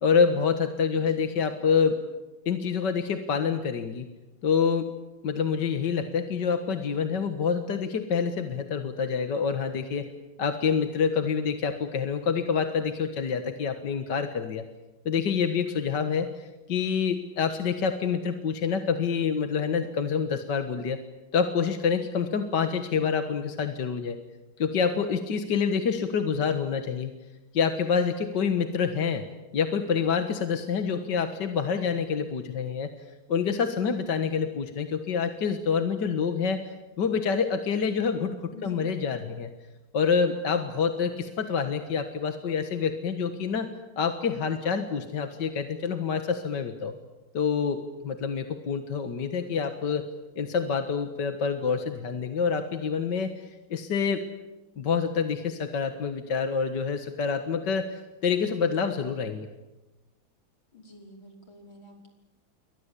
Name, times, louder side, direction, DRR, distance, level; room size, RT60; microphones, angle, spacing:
voice 1, 0.0-2.0 2.5-4.1 4.4-4.9 5.2-10.1 10.4-14.6 15.1-21.0 21.3-24.2 24.6-27.1 27.5-29.2 29.5-32.9 33.3-38.4 38.6-39.5 39.9-43.7 44.0-46.9 47.3-50.1 50.4-54.2 54.8-59.5, left 6 dB, 60° left, 8 dB, 2.1 m, -27 dB
voice 2, 0.9-1.5 38.5-39.2 60.7-62.1, equal, 75° left, 3 dB, 6.2 m, -47 dB
29.0 x 24.0 x 8.4 m, 1.1 s
omnidirectional pair, 2.2 m